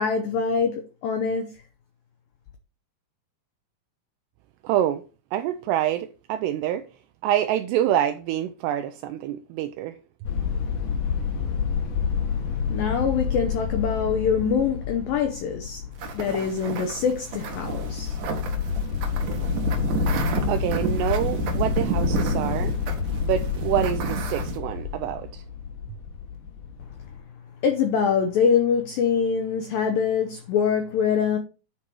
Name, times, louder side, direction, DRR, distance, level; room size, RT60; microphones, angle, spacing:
voice 1, 0.0-1.5 12.7-15.8 16.1-18.2 27.6-31.4, left 6 dB, 90° left, 2.0 m, -24 dB
voice 2, 4.6-5.0 5.3-6.8 7.2-10.0 20.5-22.7 23.2-25.4, right 11 dB, 85° right, 2.4 m, -26 dB
sound 1, 10.2-27.2, left 7 dB, 70° left, 2.0 m, -28 dB
sound 2, 16.0-24.6, right 7 dB, 70° right, 2.0 m, -31 dB
10.0 x 4.7 x 4.4 m
omnidirectional pair, 5.3 m